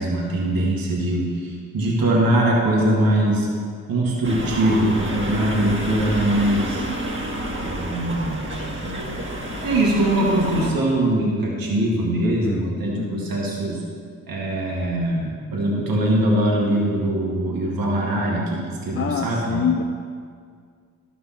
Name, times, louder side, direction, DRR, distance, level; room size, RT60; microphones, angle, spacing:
voice 1, 0.0-3.5 3.9-6.8 7.6-8.4 9.6-13.8 14.3-19.8, right 1 dB, 80° right, -3 dB, 1.7 m, -22 dB
sound 1, 4.2-10.7, right 1 dB, 35° right, 1.9 m, -29 dB
voice 2, 12.2-13.4 18.9-19.8, left 7 dB, 40° left, 6 dB, 0.5 m, -27 dB
11.5 x 5.0 x 5.9 m, 2.1 s
cardioid pair, 40°, 35 cm